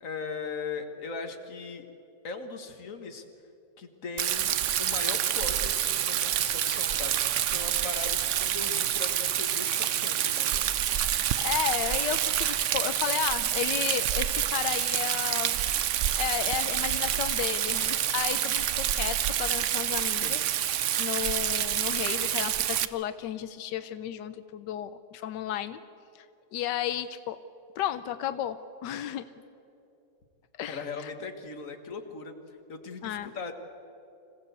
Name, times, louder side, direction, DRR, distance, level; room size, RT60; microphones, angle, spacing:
voice 1, 0.0-1.9 2.2-3.3 3.8-10.6 20.2-20.5 30.7-33.5, left 4 dB, 50° left, 6 dB, 1.9 m, -39 dB
Rain, 4.2-22.9, right 10 dB, 60° right, 0.8 m, -27 dB
voice 2, 11.4-20.4 21.0-25.8 26.1-26.3 26.5-27.4 27.8-29.3 30.6-31.1 33.0-33.3, left 10 dB, 85° left, 12 dB, 1.3 m, -33 dB
26.5 x 16.0 x 8.1 m, 2.8 s
omnidirectional pair, 1.8 m